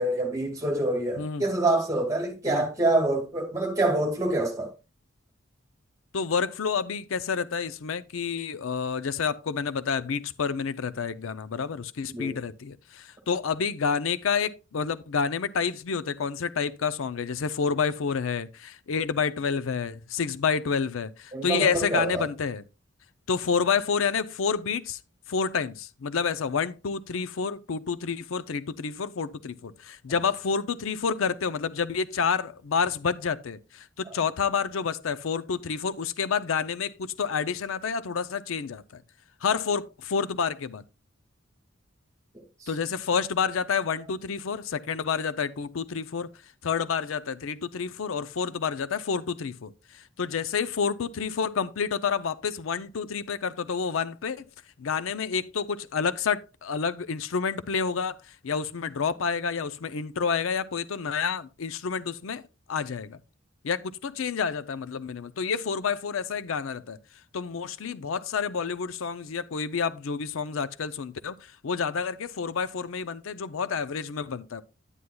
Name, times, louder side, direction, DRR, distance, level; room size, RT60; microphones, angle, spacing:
voice 1, 0.0-4.7 12.1-12.4 21.3-22.3 42.6-42.7, right 2 dB, 15° right, 2.1 m, -26 dB
voice 2, 6.1-22.6 23.3-25.0 25.3-39.0 39.4-40.8 42.7-46.3 46.6-54.5 54.8-62.4 62.7-63.2 63.6-67.0 67.3-74.6, left 6 dB, 80° left, 0.5 m, -29 dB
9.9 x 9.4 x 2.2 m
head